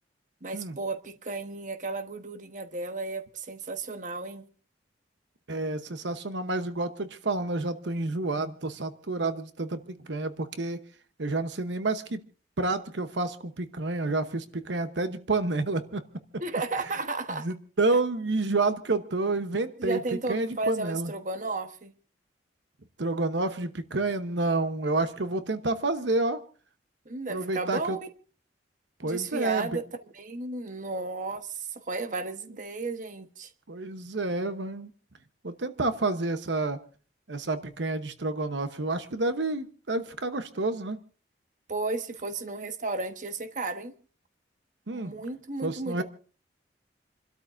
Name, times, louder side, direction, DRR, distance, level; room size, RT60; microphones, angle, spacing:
voice 1, 0.4-4.5 16.4-17.5 19.8-21.9 27.0-28.1 29.0-29.8 30.1-33.5 41.7-43.9 44.9-46.0, right 3 dB, 45° right, 1.2 m, -34 dB
voice 2, 5.5-10.8 11.2-12.2 12.6-16.0 16.3-16.4 17.4-20.0 20.3-21.1 23.0-26.4 27.3-28.0 29.0-29.7 33.7-34.9 35.4-36.8 37.3-41.0 44.9-45.1 45.6-46.0, right 2 dB, 75° right, 1.0 m, -29 dB
28.5 x 13.0 x 2.7 m
head